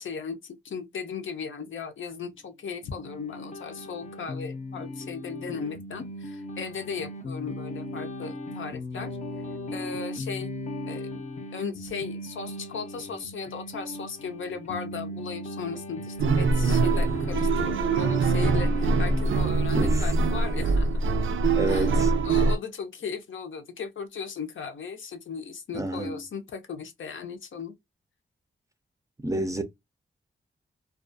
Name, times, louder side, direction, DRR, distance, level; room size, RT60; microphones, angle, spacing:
voice 1, 0.0-9.2 9.7-10.5 10.9-11.1 11.5-20.9 21.7-21.9 22.2-27.8, left 6 dB, 75° left, 0.6 m, -36 dB
sound 1, 2.8-19.4, left 1 dB, 35° left, 0.6 m, -37 dB
sound 2, 16.2-22.6, right 3 dB, 85° right, 0.4 m, -23 dB
voice 2, 19.7-20.1 21.6-22.1 25.7-26.2 29.2-29.6, right 1 dB, 15° right, 0.4 m, -29 dB
2.3 x 2.3 x 2.5 m
wide cardioid pair, 100°, 20 cm